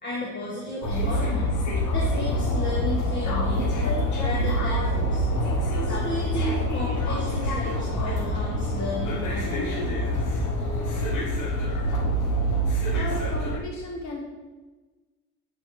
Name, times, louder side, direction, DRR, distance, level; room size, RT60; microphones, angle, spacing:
voice 1, 0.0-1.5 1.9-5.2 5.8-10.0, left 1 dB, 35° left, -5 dB, 1.5 m, -33 dB
sound 1, 0.8-13.6, equal, 85° left, 1.1 m, -26 dB
voice 2, 12.9-14.2, left 3 dB, 65° left, 0 dB, 1.2 m, -34 dB
8.5 x 6.5 x 3.1 m, 1.2 s
cardioid pair, 90°, 30 cm